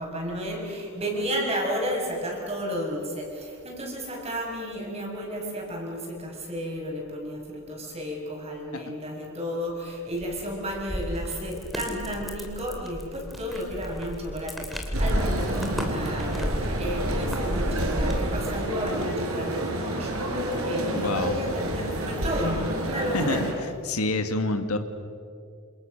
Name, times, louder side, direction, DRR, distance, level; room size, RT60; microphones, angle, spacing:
voice 1, 0.0-23.4, equal, 30° right, 0 dB, 6.5 m, -32 dB
sound 1, 10.1-18.5, equal, ahead, 3.0 m, -32 dB
sound 2, 14.9-23.5, right 1 dB, 75° right, 4.8 m, -30 dB
voice 2, 21.0-21.3 23.1-23.5 23.8-24.8, left 2 dB, 80° left, 7 dB, 2.0 m, -27 dB
28.5 x 28.0 x 6.6 m, 2.3 s
head